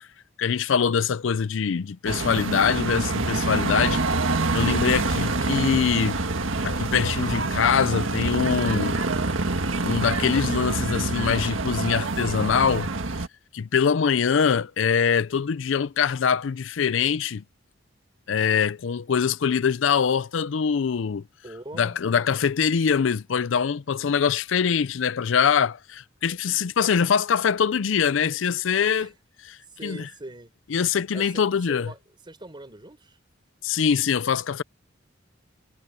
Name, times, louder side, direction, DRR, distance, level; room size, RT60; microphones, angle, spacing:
voice 1, 0.4-4.0 4.5-6.2 6.6-9.0 9.8-12.9 13.5-17.4 18.3-21.2 21.8-29.1 29.8-30.1 30.7-31.9 33.6-34.6, left 7 dB, 70° left, 0.5 m, -23 dB
sound 1, 2.1-13.3, right 3 dB, 85° right, 1.7 m, -26 dB
voice 2, 21.4-22.0 28.9-29.1 29.6-30.5 31.1-33.2, right 1 dB, 25° right, 3.9 m, -42 dB
head